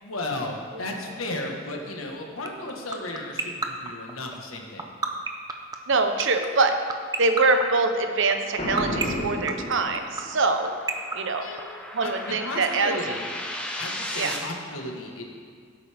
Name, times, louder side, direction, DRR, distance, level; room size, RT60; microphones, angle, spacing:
voice 1, 0.0-4.8 11.4-11.6 12.0-13.2 13.7-15.2, left 2 dB, 90° left, 1 dB, 1.5 m, -34 dB
sound 1, 2.5-12.1, right 4 dB, 20° right, 0.7 m, -27 dB
voice 2, 5.9-6.8 7.2-10.7 11.1-11.5 11.9-12.9 14.1-14.3, right 3 dB, 65° right, 6 dB, 0.9 m, -24 dB
sound 2, 8.3-14.4, left 1 dB, 5° left, 1.1 m, -38 dB
Boom, 8.6-10.4, left 1 dB, 35° left, 1.4 m, -31 dB
16.0 x 8.3 x 3.5 m, 2.1 s
head